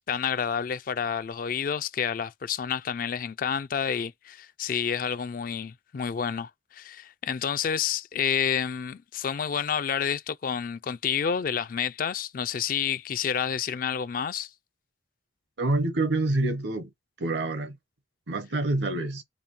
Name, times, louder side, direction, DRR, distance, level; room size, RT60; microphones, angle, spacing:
voice 1, 0.1-14.5, left 7 dB, 45° left, 0.3 m, -29 dB
voice 2, 15.6-16.9 17.2-17.8 18.3-19.2, right 2 dB, 65° right, 0.9 m, -27 dB
5.2 x 2.3 x 4.4 m
head